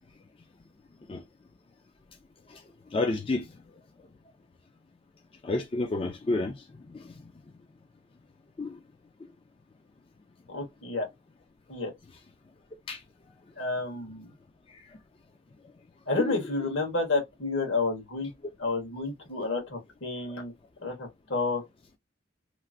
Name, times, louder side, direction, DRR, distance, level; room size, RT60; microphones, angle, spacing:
voice 1, 2.9-3.5 5.4-6.5 6.9-7.1 8.6-8.8 12.9-13.0 16.2-16.4, left 2 dB, 25° left, 0.3 m, -29 dB
voice 2, 10.5-11.1 11.7-11.9 13.6-14.3 16.1-18.3 18.6-20.5 20.8-21.6, left 3 dB, 75° left, 1.4 m, -30 dB
3.0 x 2.4 x 2.5 m
head